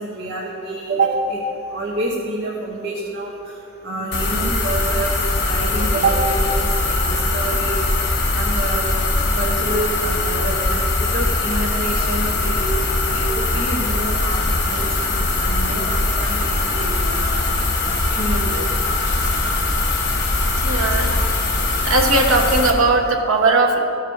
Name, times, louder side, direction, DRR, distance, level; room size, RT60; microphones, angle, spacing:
voice 1, 0.0-1.4 1.7-3.3 3.8-5.1 5.4-7.8 8.3-8.9 9.4-12.7 13.1-17.4 18.2-18.7 21.0-21.2, right 2 dB, 50° right, -3 dB, 1.0 m, -27 dB
sound 1, 4.1-22.7, left 2 dB, 50° left, 1.0 m, -21 dB
voice 2, 20.6-21.1 21.8-23.8, right 3 dB, 75° right, 2 dB, 0.8 m, -18 dB
14.0 x 4.8 x 4.6 m, 2.9 s
head